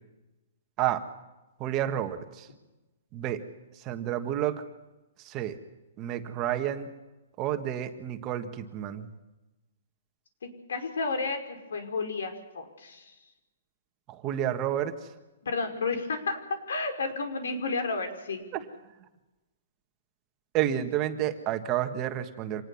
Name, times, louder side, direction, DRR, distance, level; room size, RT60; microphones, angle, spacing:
voice 1, 1.6-2.5 3.1-3.4 3.7-4.6 5.2-5.6 6.0-6.9 7.4-9.1 14.1-15.0 18.5-18.6 20.5-22.6, right 11 dB, 20° right, 7 dB, 1.6 m, -30 dB
voice 2, 10.4-13.0 15.4-16.4 16.7-18.4, left 4 dB, 90° left, 6 dB, 5.1 m, -32 dB
26.0 x 19.5 x 7.2 m, 1.0 s
hypercardioid pair, 170°, 0 cm